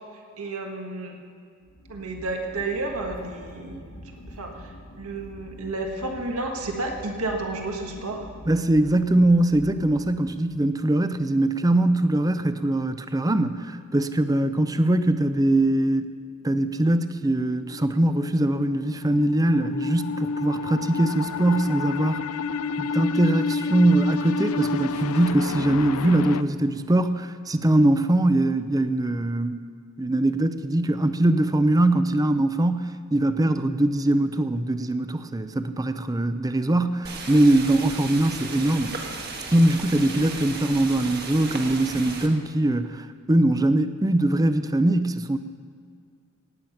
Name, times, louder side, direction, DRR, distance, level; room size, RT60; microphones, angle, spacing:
voice 1, 0.4-1.2 1.9-3.8 4.3-8.3, right 2 dB, 90° right, 2 dB, 1.6 m, -31 dB
sound 1, 1.6-10.7, equal, 65° left, 1.6 m, -45 dB
voice 2, 8.5-16.1 16.4-22.2 22.8-29.6 30.0-39.0 39.5-45.4, right 1 dB, 15° right, 10 dB, 0.5 m, -22 dB
sound 2, 17.2-26.4, left 4 dB, 90° left, 0.4 m, -30 dB
sound 3, 37.0-42.3, right 4 dB, 45° right, 1.5 m, -35 dB
17.5 x 9.0 x 5.7 m, 2.2 s
head